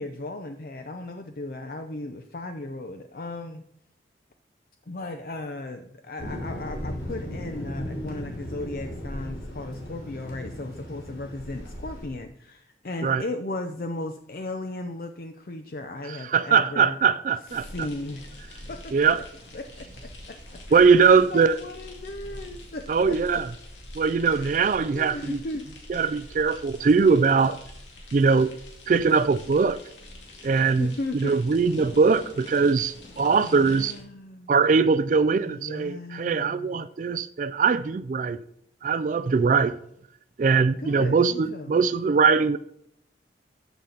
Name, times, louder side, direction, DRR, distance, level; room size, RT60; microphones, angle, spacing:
voice 1, 0.0-3.6 4.9-17.0 17.6-18.9 19.5-19.9 20.3-20.4 20.7-23.4 24.3-25.7 26.0-26.2 30.8-31.3 33.2-34.5 35.4-36.8 40.8-41.8, left 2 dB, 50° left, 0.5 m, -36 dB
Thunder, 6.2-12.1, equal, 70° left, 3.2 m, -36 dB
voice 2, 16.1-17.9 18.9-19.2 20.7-21.6 22.9-23.5 23.9-25.4 25.9-27.6 28.1-28.5 28.9-29.8 30.4-33.9 34.5-38.4 38.8-39.7 40.4-42.6, right 5 dB, 45° right, 0.3 m, -21 dB
sound 1, 17.5-34.0, left 1 dB, 85° left, 2.4 m, -45 dB
14.0 x 5.8 x 3.9 m
head